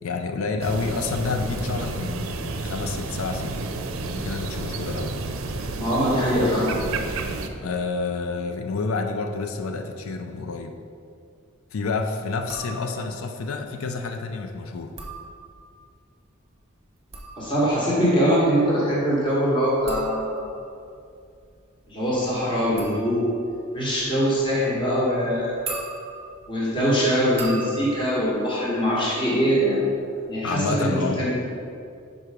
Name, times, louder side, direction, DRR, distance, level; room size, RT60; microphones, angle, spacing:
voice 1, 0.0-3.7 4.0-5.2 7.6-10.8 11.7-14.9 30.4-31.2, left 4 dB, 90° left, 5 dB, 0.5 m, -29 dB
sound 1, 0.6-7.5, right 3 dB, 75° right, 0.5 m, -31 dB
voice 2, 5.8-6.7 17.4-20.4 21.9-23.2 23.7-25.6 26.5-29.8 30.3-31.3, equal, 25° left, -7 dB, 1.5 m, -22 dB
sound 2, 12.5-13.2 14.8-15.9 16.8-29.6 29.8-30.4, right 3 dB, 30° right, 1.0 m, -41 dB
5.5 x 4.7 x 4.9 m, 2.4 s
head